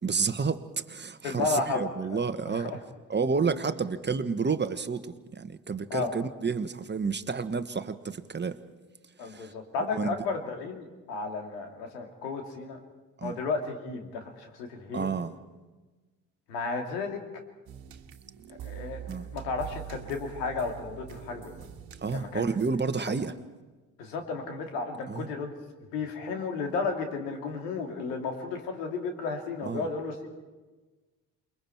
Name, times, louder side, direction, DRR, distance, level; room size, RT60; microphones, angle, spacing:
voice 1, 0.0-2.7 3.1-8.6 9.2-9.5 9.9-10.2 13.2-13.4 14.9-15.4 19.1-19.3 22.0-23.3 25.1-25.3 29.6-29.9, right 5 dB, 20° right, 10 dB, 1.4 m, -30 dB
voice 2, 1.2-2.2 2.5-2.8 3.4-3.6 5.9-6.1 9.2-12.8 13.2-15.1 16.5-17.2 18.5-19.0 19.3-21.7 22.1-22.5 24.0-25.5 25.9-30.3, left 4 dB, 80° left, 4 dB, 2.7 m, -33 dB
sound 1, 17.7-22.7, right 10 dB, 50° right, 1.8 m, -44 dB
28.5 x 22.0 x 4.6 m, 1.3 s
hypercardioid pair, 55°, 48 cm